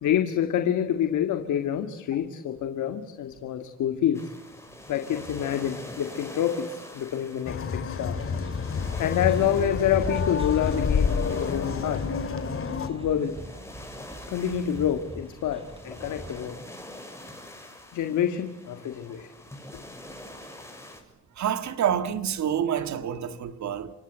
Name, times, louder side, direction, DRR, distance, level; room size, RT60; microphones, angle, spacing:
voice 1, 0.0-4.3 4.9-8.2 9.0-12.0 12.9-13.4 14.3-16.6 17.9-19.3, left 9 dB, 75° left, 2.0 m, -27 dB
sound 1, 4.1-21.0, left 1 dB, 10° left, 6.6 m, -45 dB
sound 2, 7.5-12.9, left 5 dB, 45° left, 3.2 m, -28 dB
sound 3, 7.9-16.5, right 1 dB, 15° right, 5.8 m, -45 dB
voice 2, 21.4-23.9, right 9 dB, 65° right, 1.8 m, -27 dB
27.5 x 24.0 x 8.9 m
cardioid pair, 90°, 30 cm